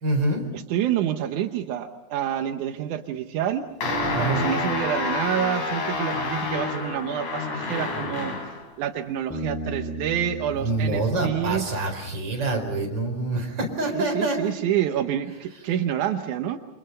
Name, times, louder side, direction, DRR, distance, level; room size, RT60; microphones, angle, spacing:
voice 1, 0.0-0.4 4.1-4.4 10.5-14.5, right 2 dB, 35° right, 2 dB, 5.2 m, -26 dB
voice 2, 0.5-3.7 4.2-8.3 8.8-11.8 13.9-16.6, right 10 dB, 85° right, 6 dB, 2.5 m, -27 dB
sound 1, 3.8-8.6, left 3 dB, 80° left, 4.8 m, -28 dB
Bass guitar, 9.3-12.8, right 1 dB, 5° left, 2.9 m, -36 dB
29.0 x 26.5 x 5.6 m, 0.90 s
omnidirectional pair, 3.4 m